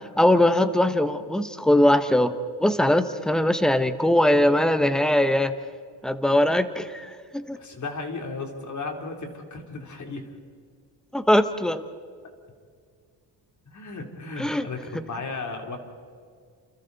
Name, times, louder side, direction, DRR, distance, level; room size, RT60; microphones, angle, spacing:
voice 1, 0.2-5.5 6.0-7.6 11.1-11.8 14.4-14.7, left 1 dB, ahead, 10 dB, 1.0 m, -21 dB
voice 2, 7.6-10.3 13.7-15.8, left 3 dB, 45° left, 3 dB, 3.4 m, -35 dB
29.5 x 28.5 x 4.1 m, 2.1 s
cardioid pair, 140°, 42 cm